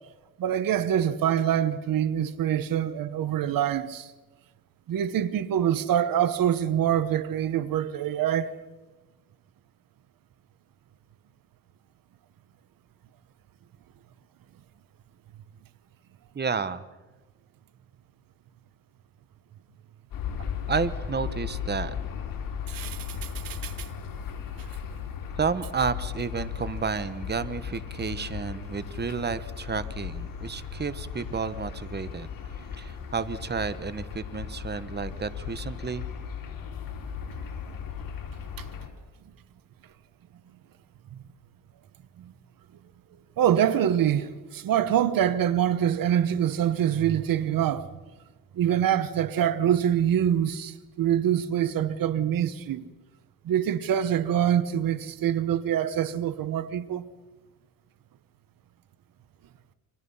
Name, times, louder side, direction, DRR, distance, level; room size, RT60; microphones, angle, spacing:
voice 1, 0.4-4.1 4.9-8.5 22.7-23.0 23.4-23.7 43.4-47.8 48.6-52.8 53.5-57.0, right 10 dB, 85° right, 1.2 m, -25 dB
voice 2, 16.3-16.9 20.7-21.9 25.4-32.3 32.8-36.0, right 5 dB, 30° right, 1.2 m, -31 dB
sound 1, 20.1-38.9, left 7 dB, 85° left, 4.3 m, -36 dB
29.5 x 24.5 x 5.6 m
cardioid pair, 90°, 33 cm